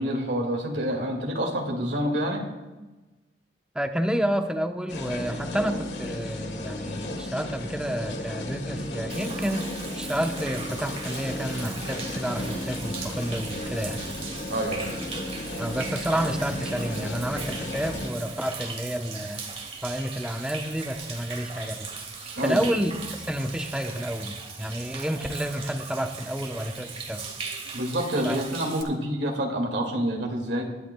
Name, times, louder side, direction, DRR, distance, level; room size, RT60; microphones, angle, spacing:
voice 1, 0.0-2.5 14.5-15.0 22.4-22.6 27.7-30.7, equal, 75° right, 1 dB, 2.0 m, -27 dB
voice 2, 3.7-9.6 10.0-14.0 15.6-19.4 19.8-21.9 22.4-27.2 28.2-28.4, equal, 5° right, 5 dB, 0.8 m, -30 dB
sound 1, 4.9-18.1, left 1 dB, 70° left, 1.6 m, -34 dB
Human voice / Rain / Stream, 9.1-28.8, right 4 dB, 35° right, 1.7 m, -39 dB
22.0 x 11.0 x 2.2 m, 1.2 s
head